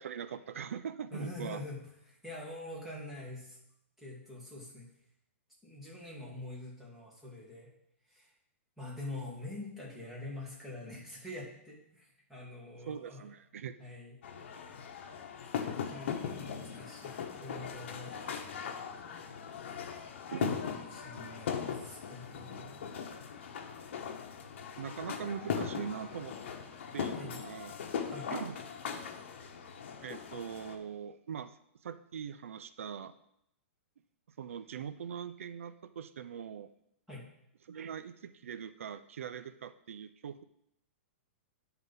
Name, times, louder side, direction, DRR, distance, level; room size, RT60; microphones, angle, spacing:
voice 1, 0.0-1.6 12.9-13.7 20.3-20.6 24.8-26.4 26.9-27.8 28.3-28.6 30.0-33.1 34.4-36.7 37.7-40.4, right 8 dB, 90° right, 13 dB, 0.5 m, -41 dB
voice 2, 1.1-3.6 4.0-4.9 5.6-7.7 8.1-8.3 8.8-13.2 13.8-14.2 15.9-18.2 20.4-22.8 27.1-27.4 28.0-28.3 37.1-37.3, left 2 dB, 5° right, -5 dB, 1.8 m, -45 dB
sound 1, 14.2-30.8, left 7 dB, 60° left, 1.0 m, -39 dB
9.2 x 4.0 x 5.6 m, 0.77 s
hypercardioid pair, 160°, 7 cm